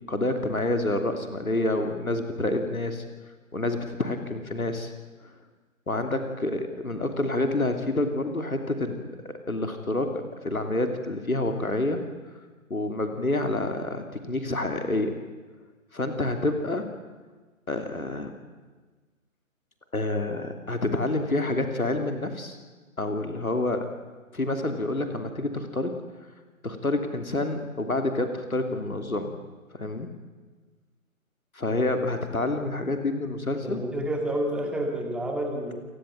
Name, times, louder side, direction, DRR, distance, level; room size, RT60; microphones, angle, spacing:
voice 1, 0.1-3.0 3.5-4.9 5.2-5.3 5.9-9.0 9.2-12.0 12.7-15.2 15.9-16.9 17.7-18.3 19.9-22.6 23.0-23.9 24.3-25.9 26.6-29.3 29.7-30.1 31.5-33.8, left 2 dB, 85° left, 6 dB, 3.0 m, -28 dB
voice 2, 33.6-35.8, right 1 dB, ahead, 2 dB, 2.1 m, -29 dB
28.0 x 17.5 x 9.3 m, 1.4 s
figure-of-eight pair, 145°, 41 cm